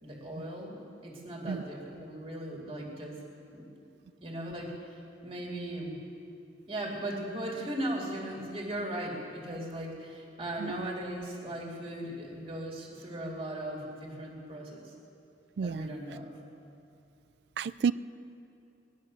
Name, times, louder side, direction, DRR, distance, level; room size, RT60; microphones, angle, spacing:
voice 1, 0.0-3.2 3.5-3.6 4.2-6.0 6.7-14.9 15.6-16.3, right 1 dB, 30° right, -2 dB, 2.5 m, -38 dB
voice 2, 15.6-15.9 17.6-17.9, right 6 dB, 60° right, 17 dB, 0.3 m, -30 dB
20.0 x 11.5 x 6.3 m, 2.6 s
head